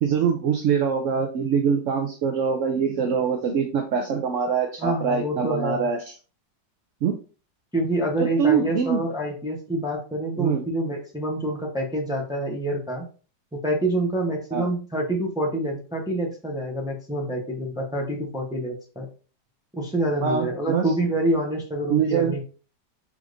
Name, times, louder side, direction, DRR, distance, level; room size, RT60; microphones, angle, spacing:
voice 1, 0.0-6.0 7.0-7.1 8.2-9.0 10.4-10.6 14.5-14.7 20.2-20.9 21.9-22.3, right 6 dB, 70° right, 4 dB, 0.7 m, -23 dB
voice 2, 4.8-5.9 7.7-13.1 13.5-19.1 19.7-22.4, right 1 dB, 5° right, -1 dB, 0.3 m, -27 dB
4.8 x 3.5 x 2.5 m, 0.37 s
omnidirectional pair, 1.9 m